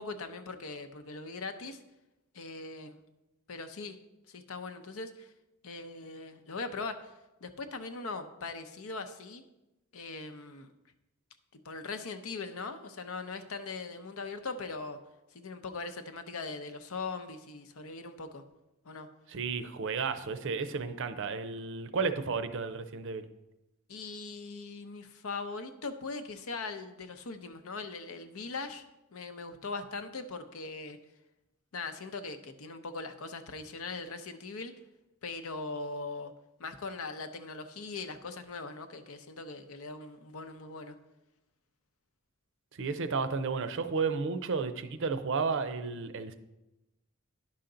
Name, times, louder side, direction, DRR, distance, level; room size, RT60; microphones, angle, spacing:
voice 1, 0.0-1.8 2.3-3.0 3.5-4.0 4.3-5.3 5.6-7.1 7.4-9.4 9.9-10.7 11.5-15.0 15.3-18.4 18.8-19.1 23.9-28.8 29.1-31.0 31.7-34.7 35.2-36.3 36.6-40.9, left 3 dB, 75° left, 9 dB, 0.7 m, -40 dB
voice 2, 19.3-23.3 42.7-46.3, right 4 dB, 60° right, 10 dB, 0.6 m, -32 dB
10.5 x 5.7 x 3.8 m, 0.96 s
head